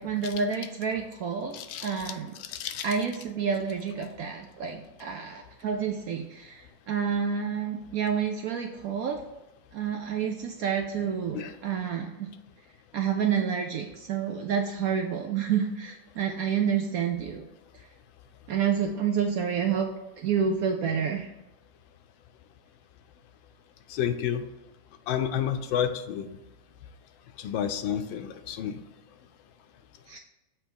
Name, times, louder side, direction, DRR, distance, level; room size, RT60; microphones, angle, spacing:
voice 1, 0.0-1.5 1.8-2.3 2.8-6.6 6.9-9.2 9.7-12.3 12.9-17.4 18.5-19.9 20.2-21.3 30.1-30.2, right 7 dB, 70° right, 3 dB, 0.8 m, -29 dB
voice 2, 1.5-2.1 2.4-2.9 11.3-11.5 23.9-24.5 25.1-26.3 27.4-28.8, left 9 dB, 90° left, 9 dB, 1.4 m, -30 dB
7.0 x 3.0 x 5.2 m, 1.0 s
omnidirectional pair, 2.0 m